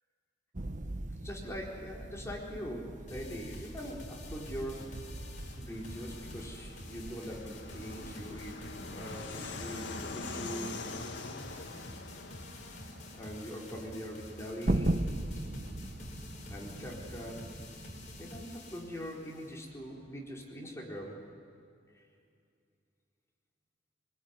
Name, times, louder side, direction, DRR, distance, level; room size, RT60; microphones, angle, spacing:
sound 1, 0.5-18.4, right 1 dB, 45° right, 1.0 m, -40 dB
voice 1, 1.2-4.9 5.6-10.8 13.1-15.1 16.5-17.5 18.2-21.2, equal, 15° left, -3 dB, 4.4 m, -42 dB
sound 2, 3.1-19.7, left 2 dB, 45° left, 4.2 m, -50 dB
Fixed-wing aircraft airplane, 4.2-20.4, left 3 dB, 80° left, 1.8 m, -47 dB
24.5 x 23.0 x 9.8 m, 2.4 s
head